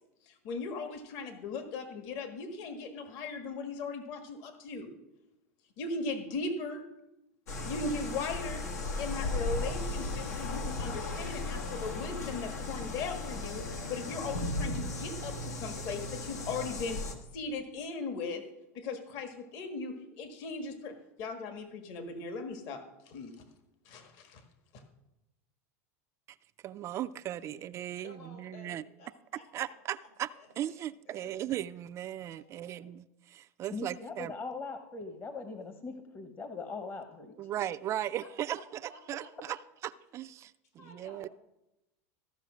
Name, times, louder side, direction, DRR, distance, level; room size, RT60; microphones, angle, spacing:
voice 1, 0.3-4.9 5.8-6.8 7.6-8.7 9.0-17.0 17.3-18.4 18.7-23.3 23.8-24.4 24.7-24.8, left 3 dB, 55° left, 1.6 m, -38 dB
sound 1, 7.5-17.1, left 2 dB, 90° left, 1.7 m, -36 dB
voice 2, 26.6-28.8 29.5-30.3 30.6-34.3 37.4-41.3, right 12 dB, 35° right, 0.4 m, -37 dB
voice 3, 28.0-29.7 30.3-31.3 32.4-32.8 38.2-38.3 38.6-39.6 40.8-41.3, left 3 dB, 70° left, 4.1 m, -55 dB
voice 4, 33.7-37.4, left 4 dB, 25° left, 0.9 m, -40 dB
14.5 x 5.6 x 6.2 m
supercardioid pair, 115°, 8 cm